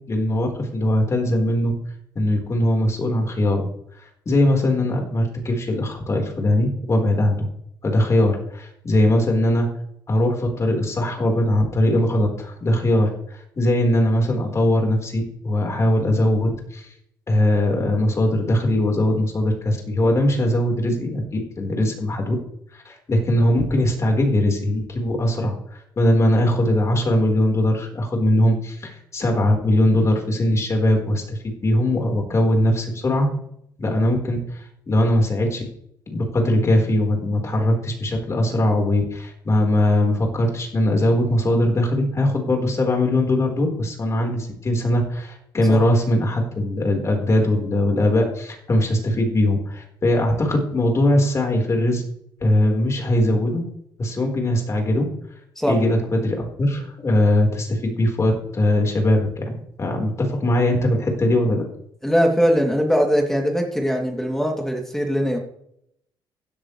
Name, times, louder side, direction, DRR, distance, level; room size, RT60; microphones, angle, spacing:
voice 1, 0.1-1.7 2.1-3.7 4.3-7.5 7.8-9.7 10.1-13.1 13.6-16.9 17.3-21.2 21.6-22.3 22.7-33.3 33.8-35.6 36.1-52.0 52.4-53.6 54.0-55.0 55.6-61.6, left 1 dB, 35° left, 1 dB, 4.6 m, -20 dB
voice 2, 62.0-65.4, equal, 5° left, 1 dB, 3.0 m, -21 dB
16.0 x 11.0 x 3.4 m, 0.73 s
cardioid pair, 90°, 8 cm